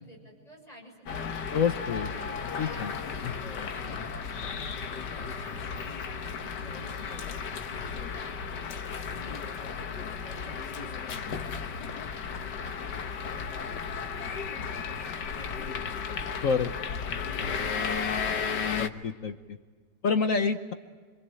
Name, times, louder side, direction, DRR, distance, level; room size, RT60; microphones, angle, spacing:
voice 1, 0.0-1.5 1.9-2.1 2.6-8.6 9.0-13.3 13.7-16.4 16.9-18.0, equal, 20° left, 0 dB, 7.4 m, -51 dB
sound 1, 1.1-18.9, left 6 dB, 75° left, 1.8 m, -34 dB
voice 2, 1.5-2.1 2.6-2.9 3.2-3.3 16.4-16.7 18.7-19.3 20.0-20.7, left 5 dB, 55° left, 8 dB, 1.3 m, -27 dB
27.5 x 23.0 x 9.0 m, 1.6 s
omnidirectional pair, 1.9 m